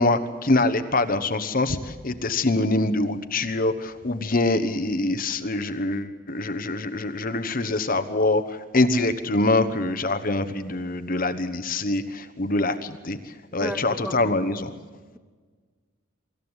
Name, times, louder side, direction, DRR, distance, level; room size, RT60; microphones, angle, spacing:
voice 1, 0.0-13.2 13.5-14.7, left 2 dB, 45° left, 10 dB, 1.1 m, -24 dB
voice 2, 13.6-14.4, equal, 5° right, 9 dB, 1.0 m, -34 dB
25.0 x 14.0 x 8.1 m, 1.5 s
head